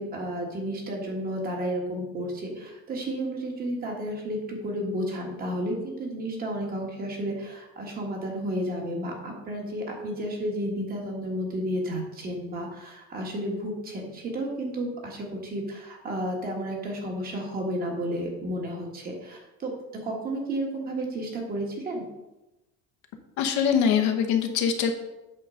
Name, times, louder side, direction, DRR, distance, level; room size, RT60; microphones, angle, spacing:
voice 1, 0.0-19.7 20.0-22.0, right 1 dB, 30° right, 0 dB, 1.7 m, -32 dB
voice 2, 23.4-24.9, left 7 dB, 65° left, 5 dB, 1.1 m, -23 dB
8.4 x 3.9 x 6.4 m, 0.99 s
cardioid pair, 175°, 30 cm